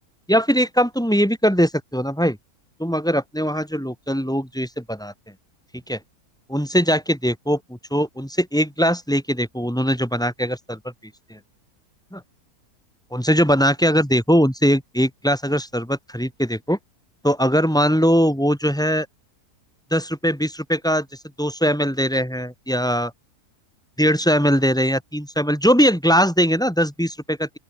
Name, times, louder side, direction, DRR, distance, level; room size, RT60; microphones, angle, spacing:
voice 1, 0.3-2.4 2.8-5.1 5.9-6.0 6.5-10.8 11.3-11.4 12.1-12.2 13.1-16.8 17.2-19.1 19.9-21.1 21.4-23.1 24.0-27.5, equal, ahead, 7.1 m, -20 dB
open air
omnidirectional pair, 1.6 m